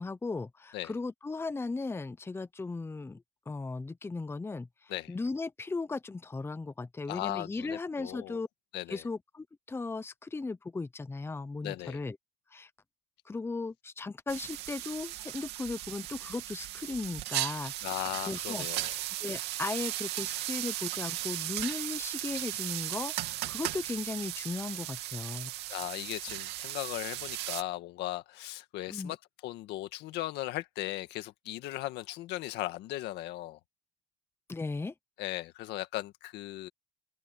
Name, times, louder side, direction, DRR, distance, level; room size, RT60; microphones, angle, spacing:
voice 1, 0.0-8.5 8.9-12.2 12.5-12.7 13.3-25.5 28.9-29.1 34.5-34.9, left 3 dB, 15° left, 0.7 m, -37 dB
voice 2, 7.1-8.4 8.7-9.0 11.6-12.0 17.8-18.9 25.7-29.2 29.4-33.6 35.2-36.7, left 16 dB, 85° left, 1.8 m, -37 dB
sound 1, 14.3-27.6, right 16 dB, 90° right, 2.7 m, -36 dB
open air
cardioid pair, 110°, 17 cm